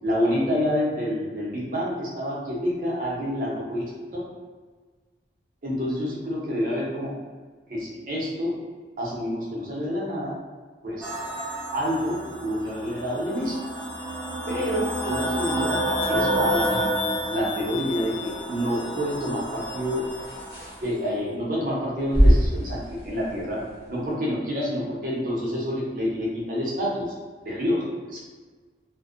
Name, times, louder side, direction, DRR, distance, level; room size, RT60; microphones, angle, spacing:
voice 1, 0.0-3.8 4.1-4.2 5.6-7.1 7.7-8.5 9.0-10.3 10.8-11.1 11.7-13.6 14.5-16.9 17.3-20.0 20.8-23.6 23.9-27.1 27.4-27.8 28.1-28.2, equal, 50° right, -5 dB, 0.7 m, -28 dB
sound 1, 11.0-20.7, equal, 15° right, 0.4 m, -30 dB
sound 2, 15.8-24.1, equal, 60° left, 1.1 m, -28 dB
2.5 x 2.1 x 2.4 m, 1.4 s
head